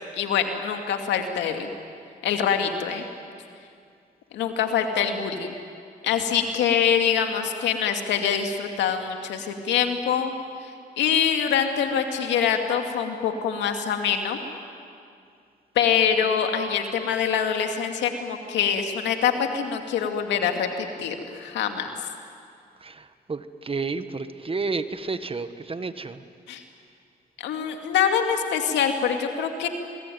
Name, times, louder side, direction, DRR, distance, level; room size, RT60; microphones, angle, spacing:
voice 1, 0.1-1.7 2.2-3.0 4.3-5.5 6.0-10.3 11.0-14.4 15.8-21.9 26.5-26.6 27.4-29.7, left 7 dB, 85° left, 5 dB, 2.5 m, -24 dB
voice 2, 22.8-26.2, right 4 dB, 30° right, 11 dB, 1.5 m, -31 dB
27.5 x 21.5 x 9.4 m, 2.3 s
cardioid pair, 65°, 18 cm